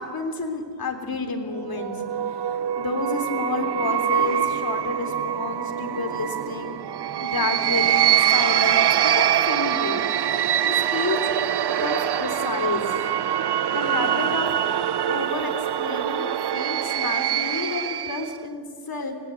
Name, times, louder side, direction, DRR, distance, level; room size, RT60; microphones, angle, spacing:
voice 1, 0.0-6.8 7.2-10.0 10.6-11.2 11.8-12.9 13.7-14.5 15.1-19.1, left 3 dB, 65° left, 5 dB, 3.4 m, -30 dB
sound 1, 1.5-18.3, right 10 dB, 80° right, 0.7 m, -24 dB
24.5 x 18.5 x 9.5 m, 2.1 s
cardioid pair, 70°, 39 cm